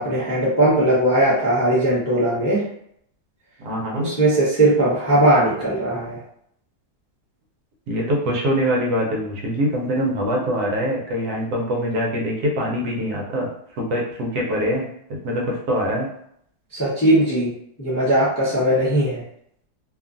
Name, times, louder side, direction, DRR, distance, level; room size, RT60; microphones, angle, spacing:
voice 1, 0.0-2.6 3.9-6.2 16.7-17.5 17.8-19.2, right 1 dB, 20° left, -9 dB, 0.4 m, -19 dB
voice 2, 3.6-4.1 7.9-13.5 13.8-16.1, equal, 75° right, -1 dB, 1.2 m, -24 dB
2.8 x 2.4 x 2.4 m, 0.69 s
omnidirectional pair, 1.7 m